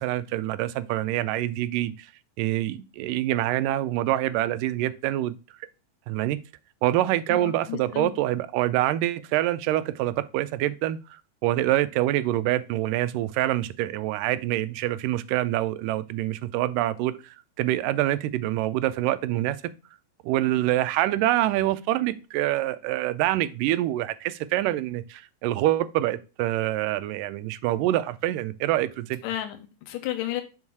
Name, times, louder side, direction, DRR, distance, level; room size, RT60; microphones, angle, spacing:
voice 1, 0.0-2.1 2.4-5.3 6.1-6.4 6.8-19.6 20.2-29.2, right 14 dB, 90° right, 2.2 m, -26 dB
voice 2, 7.3-8.2 29.2-30.4, left 13 dB, 85° left, 2.4 m, -32 dB
5.6 x 5.3 x 4.6 m
omnidirectional pair, 3.7 m